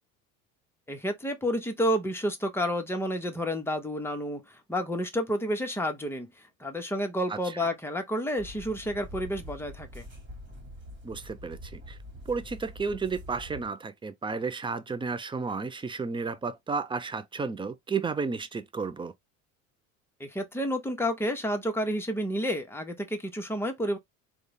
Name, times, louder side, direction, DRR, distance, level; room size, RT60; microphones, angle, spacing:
voice 1, 0.9-6.3 6.6-10.1 20.2-24.0, equal, 5° left, 1.1 m, -30 dB
voice 2, 7.3-7.7 11.0-12.0 12.3-19.1, right 4 dB, 10° right, 0.5 m, -32 dB
sound 1, 8.4-13.7, equal, 30° right, 1.7 m, -45 dB
3.8 x 2.4 x 3.4 m
hypercardioid pair, 80°, 41 cm